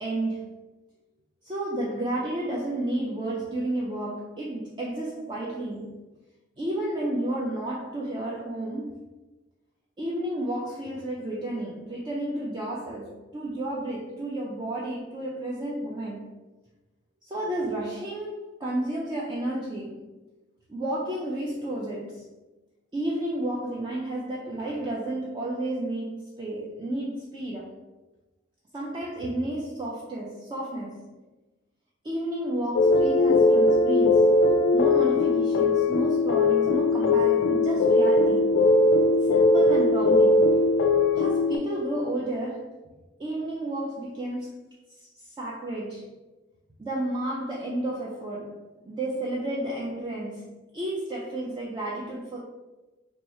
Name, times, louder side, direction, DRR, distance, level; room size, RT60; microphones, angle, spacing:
voice 1, 0.0-0.5 1.4-6.0 6.6-9.0 10.0-16.3 17.2-20.1 20.7-22.2 22.9-27.8 28.7-31.1 32.0-34.4 34.7-38.6 39.2-40.6 41.1-42.7 43.2-44.6 45.0-46.1 46.8-52.4, right 1 dB, 25° right, 0.4 m, -32 dB
sound 1, 32.7-41.6, left 2 dB, 70° left, 0.3 m, -20 dB
2.8 x 2.3 x 4.1 m
head